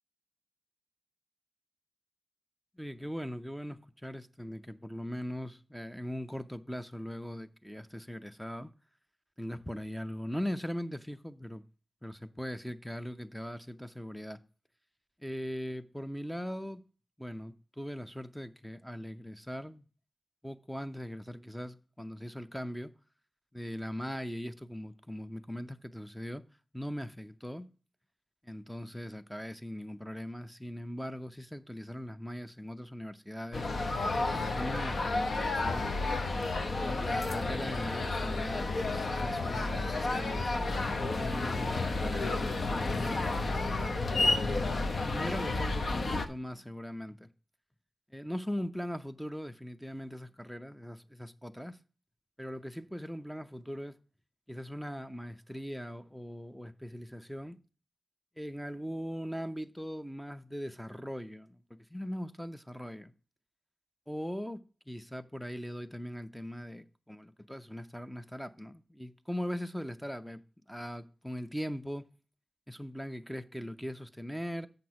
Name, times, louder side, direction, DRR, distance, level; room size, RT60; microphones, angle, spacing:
voice 1, 2.8-8.7 9.4-11.6 12.0-14.4 15.2-16.8 17.2-19.9 20.4-22.9 23.5-26.4 26.7-27.7 28.4-33.7 34.2-35.9 36.7-44.3 45.1-47.3 48.1-51.8 52.4-54.0 54.5-57.6 58.4-63.1 64.1-70.4 70.7-72.1 72.7-74.7, equal, ahead, 0.6 m, -40 dB
sound 1, 33.5-46.3, left 3 dB, 55° left, 0.8 m, -31 dB
7.7 x 6.1 x 4.7 m
wide cardioid pair, 105°, 0 cm